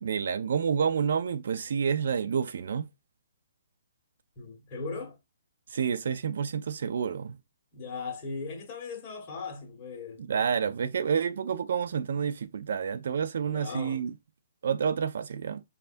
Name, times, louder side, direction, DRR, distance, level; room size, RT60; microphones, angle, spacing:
voice 1, 0.0-2.9 5.7-7.4 10.2-14.1 14.6-15.6, right 7 dB, 65° right, 0.4 m, -29 dB
voice 2, 4.4-5.2 7.7-10.2 13.4-14.0, left 4 dB, 25° left, 1.8 m, -38 dB
5.5 x 3.3 x 2.5 m
hypercardioid pair, 160°, 0 cm